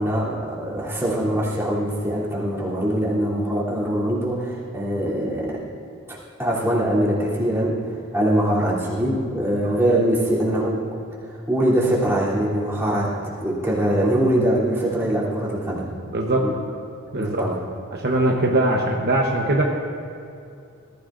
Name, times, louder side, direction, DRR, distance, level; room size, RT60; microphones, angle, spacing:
voice 1, 0.0-5.6 6.1-10.9 11.2-15.9 16.4-16.5 17.2-17.6, right 1 dB, 10° right, -8 dB, 3.2 m, -23 dB
voice 2, 16.1-16.5 17.1-17.4 17.9-19.6, right 2 dB, 50° right, -1 dB, 1.0 m, -21 dB
20.5 x 15.0 x 2.6 m, 2.5 s
head